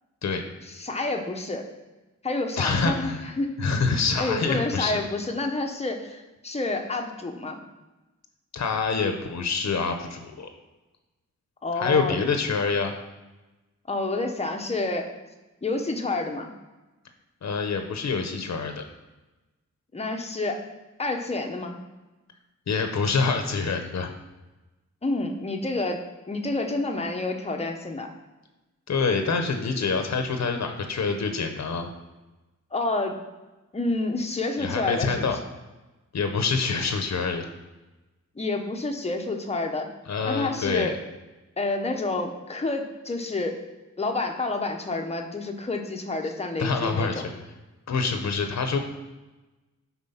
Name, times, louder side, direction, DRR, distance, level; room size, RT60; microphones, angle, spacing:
voice 1, 0.7-1.7 2.2-3.1 3.4-3.5 4.2-7.6 11.6-12.3 13.9-15.1 15.6-16.5 19.9-20.6 21.0-21.8 25.0-26.0 26.3-28.1 32.7-33.2 33.7-35.3 38.3-39.9 40.2-41.0 41.6-43.6 44.0-47.2, left 2 dB, 20° left, 3 dB, 0.9 m, -29 dB
voice 2, 2.6-3.3 3.6-5.0 8.5-10.5 11.8-12.9 17.4-18.8 22.7-24.1 28.9-31.9 34.6-35.4 36.1-37.5 40.1-40.9 46.6-47.2 47.9-48.8, left 4 dB, 60° left, 6 dB, 0.9 m, -26 dB
11.0 x 4.4 x 5.6 m, 1.1 s
wide cardioid pair, 165°, 30 cm